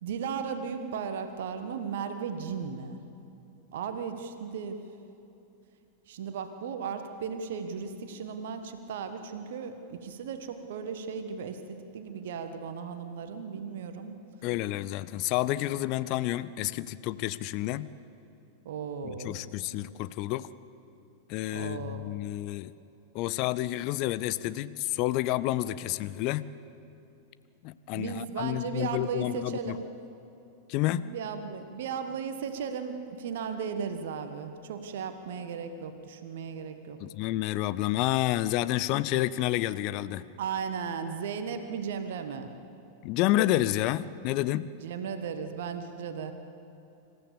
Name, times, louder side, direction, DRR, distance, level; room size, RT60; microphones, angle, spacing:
voice 1, 0.0-3.0 3.7-4.8 6.1-14.1 18.6-19.4 21.5-22.2 27.9-29.9 31.0-37.0 40.4-42.5 44.8-46.3, right 6 dB, 55° right, 8 dB, 1.4 m, -36 dB
voice 2, 14.4-17.9 19.0-20.5 21.3-22.7 23.1-26.4 27.6-29.8 30.7-31.1 37.0-40.2 43.0-44.7, left 15 dB, 40° left, 16 dB, 0.5 m, -29 dB
26.5 x 15.0 x 7.1 m, 2.8 s
figure-of-eight pair, 90°, 0 cm